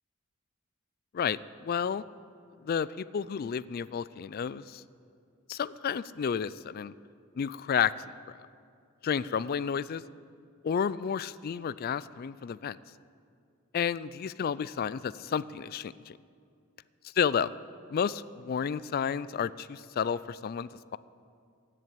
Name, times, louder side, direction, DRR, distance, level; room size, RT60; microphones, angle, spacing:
voice 1, 1.1-2.0 2.6-4.8 5.5-6.9 7.4-8.1 9.0-10.0 10.6-12.8 13.7-16.2 17.2-17.5 17.9-21.0, left 7 dB, 45° left, 18 dB, 0.3 m, -31 dB
16.0 x 7.5 x 8.4 m, 2.3 s
head